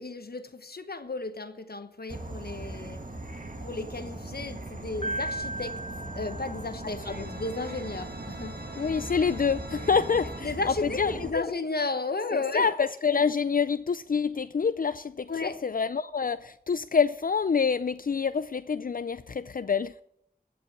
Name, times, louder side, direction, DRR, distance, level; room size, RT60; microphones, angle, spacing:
voice 1, 0.0-3.0 3.6-5.8 6.1-8.9 10.4-12.7 15.3-15.6, left 3 dB, 80° left, 1.0 m, -34 dB
Insect / Frog, 2.1-11.3, right 1 dB, 55° right, 1.7 m, -39 dB
sound 1, 4.0-4.4 7.0-10.4, right 2 dB, 80° right, 1.2 m, -45 dB
Piano, 5.0-7.1, right 1 dB, 40° left, 1.5 m, -36 dB
voice 2, 8.8-11.5 12.3-20.0, left 6 dB, 60° left, 0.4 m, -27 dB
15.0 x 5.5 x 8.8 m
wide cardioid pair, 45°, 16 cm